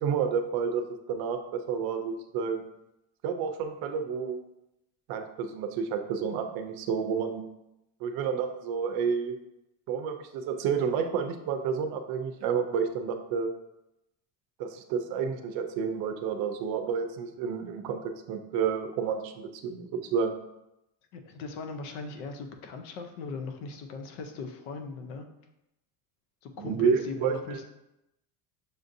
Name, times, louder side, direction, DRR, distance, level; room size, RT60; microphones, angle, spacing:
voice 1, 0.0-2.6 3.2-4.4 5.1-7.5 8.0-9.4 9.9-13.5 14.6-18.0 18.3-20.3 26.6-27.6, right 6 dB, 55° right, 7 dB, 0.5 m, -30 dB
voice 2, 21.1-25.3 26.4-27.6, left 4 dB, 80° left, 6 dB, 0.7 m, -39 dB
6.4 x 2.6 x 2.6 m, 0.89 s
cardioid pair, 150°, 43 cm